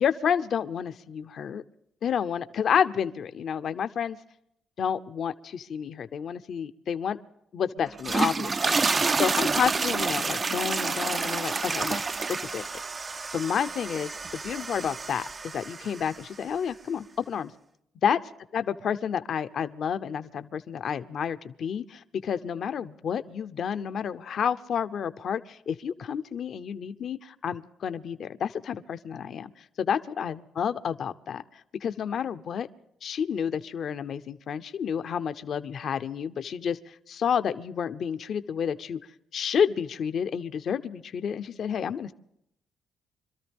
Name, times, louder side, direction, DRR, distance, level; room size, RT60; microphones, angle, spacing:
voice 1, 0.0-1.6 2.0-4.2 4.8-7.2 7.5-8.8 9.2-12.7 13.3-17.5 18.0-18.2 18.5-29.5 29.8-31.4 31.8-32.7 33.0-39.0 39.3-42.1, left 7 dB, 60° left, 11 dB, 0.7 m, -30 dB
sound 1, 7.9-16.2, right 4 dB, 35° right, 0.5 m, -29 dB
25.5 x 13.5 x 3.5 m, 0.75 s
cardioid pair, 90°, 0 cm